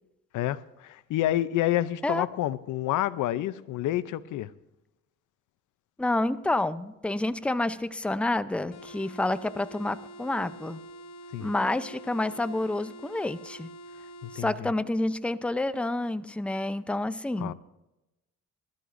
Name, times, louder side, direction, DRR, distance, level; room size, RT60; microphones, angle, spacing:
voice 1, 0.3-4.5 11.3-11.5 14.2-14.7 17.4-17.5, left 14 dB, 80° left, 0.7 m, -29 dB
voice 2, 6.0-10.8 11.4-13.7 14.3-17.5, left 2 dB, 5° left, 0.6 m, -29 dB
sound 1, 8.7-14.5, right 1 dB, 60° left, 1.1 m, -46 dB
21.5 x 13.0 x 2.6 m
cardioid pair, 90°, 30 cm